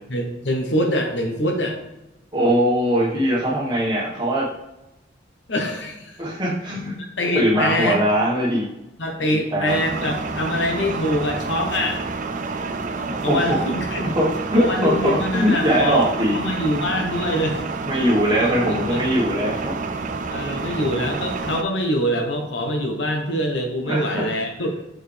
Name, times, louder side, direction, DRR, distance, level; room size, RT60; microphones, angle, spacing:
voice 1, 0.1-1.8 5.5-6.2 7.2-8.0 9.0-12.0 13.2-14.2 14.5-16.1 16.3-17.7 18.4-19.0 20.3-24.7, left 1 dB, 75° left, 3 dB, 1.0 m, -24 dB
voice 2, 2.3-4.5 6.2-7.0 7.3-8.7 9.3-9.8 13.0-13.6 14.1-16.3 17.9-19.8 23.9-24.3, equal, 25° right, -5 dB, 1.4 m, -21 dB
sound 1, 9.7-21.6, right 3 dB, 40° right, 0.4 m, -29 dB
6.2 x 4.7 x 3.4 m, 0.94 s
head